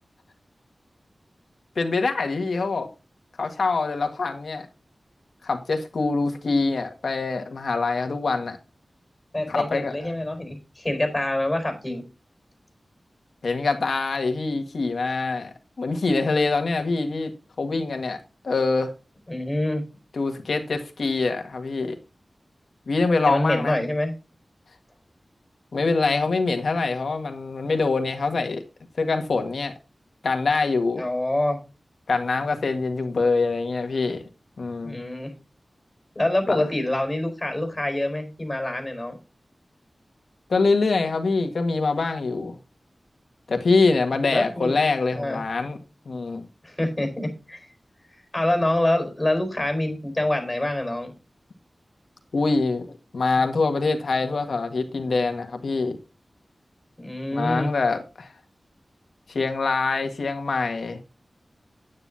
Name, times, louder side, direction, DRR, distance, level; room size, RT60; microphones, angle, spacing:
voice 1, 1.8-2.9 3.4-4.7 5.4-8.6 9.5-9.9 13.4-17.3 17.6-18.2 18.4-18.9 20.2-22.0 22.9-23.8 25.7-28.6 29.0-29.7 30.2-31.0 32.1-34.2 34.6-35.0 36.5-36.6 40.5-42.6 43.5-45.8 46.1-46.4 52.3-52.9 53.1-56.0 57.3-58.3 59.3-61.0, left 3 dB, 85° left, 1.7 m, -24 dB
voice 2, 9.3-12.0 19.3-19.8 23.3-24.1 31.0-31.6 34.8-35.3 36.1-39.2 44.3-44.8 45.1-45.4 46.6-47.7 48.3-51.1 57.0-57.7, left 1 dB, 20° left, 4.4 m, -26 dB
9.7 x 9.5 x 2.8 m
wide cardioid pair, 95°, 0 cm